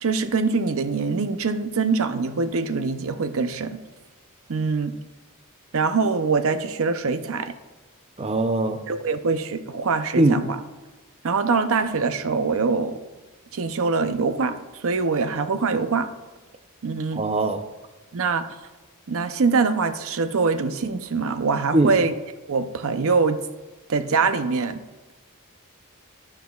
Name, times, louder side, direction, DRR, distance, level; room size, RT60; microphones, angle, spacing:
voice 1, 0.0-3.8 4.5-4.9 5.7-7.5 8.9-10.6 11.2-13.0 13.5-16.1 16.8-17.2 18.1-18.5 19.1-22.1 22.5-23.4 23.9-24.8, right 4 dB, 65° right, 10 dB, 0.6 m, -23 dB
voice 2, 8.2-8.8 10.1-10.4 17.2-17.7 21.7-22.0, right 2 dB, 30° right, 8 dB, 0.6 m, -21 dB
11.5 x 10.5 x 2.4 m, 1.2 s
head